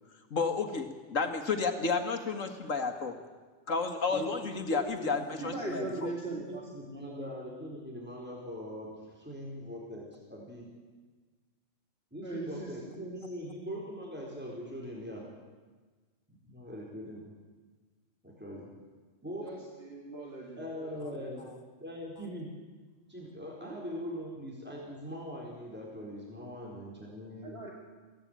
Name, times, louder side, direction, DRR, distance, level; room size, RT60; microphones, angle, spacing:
voice 1, 0.3-3.1 3.7-6.1, left 4 dB, 85° left, 6 dB, 2.3 m, -31 dB
voice 2, 4.1-4.4 4.7-10.7 12.1-15.2 16.3-17.3 18.2-18.7 19.2-19.5 20.6-21.5 21.8-22.5 23.1-27.6, equal, 10° right, -3 dB, 4.3 m, -41 dB
voice 3, 5.4-6.6 6.9-7.2 12.2-13.0 19.4-19.6 19.9-21.1 23.6-23.8 27.4-27.7, right 3 dB, 50° right, -2 dB, 2.9 m, -40 dB
23.0 x 16.5 x 9.1 m, 1.4 s
omnidirectional pair, 1.3 m